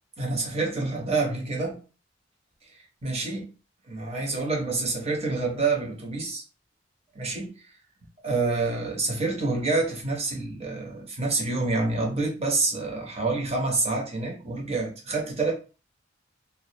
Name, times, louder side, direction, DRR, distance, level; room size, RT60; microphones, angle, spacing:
voice 1, 0.2-1.8 3.0-3.5 3.9-6.4 7.1-7.5 8.2-15.5, right 3 dB, 35° right, 0.7 m, -27 dB
2.2 x 2.0 x 2.7 m
head